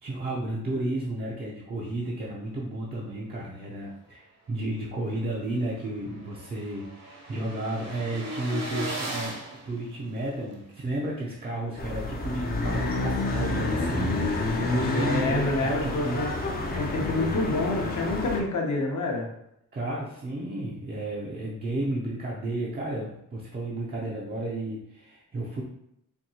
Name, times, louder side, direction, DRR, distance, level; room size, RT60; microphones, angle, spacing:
voice 1, 0.0-9.4 9.7-14.5 14.7-16.2 16.7-16.9 19.7-25.6, right 1 dB, 30° right, -5 dB, 0.5 m, -33 dB
sound 1, 5.0-5.1 5.4-5.5 5.7-10.5, right 1 dB, 50° right, 0.8 m, -37 dB
sound 2, 11.8-18.4, left 2 dB, 25° left, 0.5 m, -28 dB
voice 2, 14.9-16.3 16.8-19.3, left 2 dB, 55° left, 0 dB, 0.8 m, -28 dB
4.4 x 2.7 x 2.7 m, 0.78 s
wide cardioid pair, 170°, 34 cm